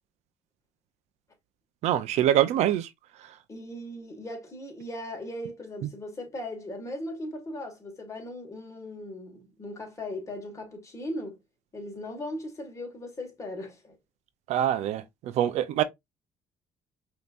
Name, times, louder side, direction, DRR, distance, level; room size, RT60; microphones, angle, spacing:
voice 1, 1.8-2.9 14.5-15.0 15.4-15.8, right 11 dB, 70° right, 0.5 m, -24 dB
voice 2, 3.5-11.4 11.7-14.0, left 1 dB, 25° left, 1.8 m, -38 dB
5.2 x 2.9 x 2.4 m
cardioid pair, 95°, 12 cm